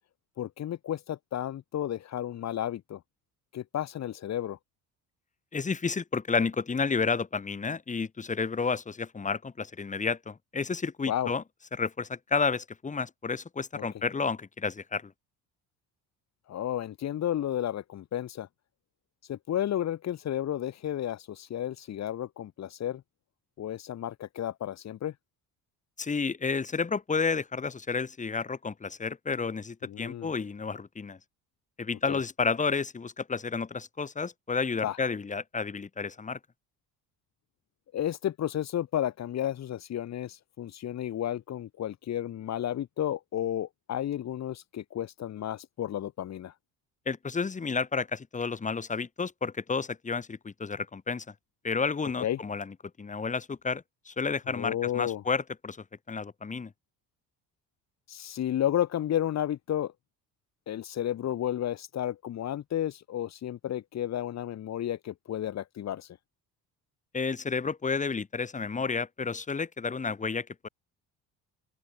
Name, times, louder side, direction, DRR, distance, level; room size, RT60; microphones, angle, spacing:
voice 1, 0.4-3.0 3.5-4.6 11.1-11.3 13.7-13.8 16.5-18.5 19.3-23.0 23.6-25.1 29.8-30.3 32.1-32.2 34.8-35.0 37.9-46.5 52.2-52.4 54.5-55.2 58.1-59.9 60.7-66.2, left 11 dB, 50° left, 4.6 m, -32 dB
voice 2, 5.5-11.4 11.8-15.1 26.0-31.2 31.8-36.4 47.1-51.3 51.6-56.7 67.1-70.7, left 5 dB, 20° left, 7.5 m, -31 dB
open air
cardioid pair, 155°, 35 cm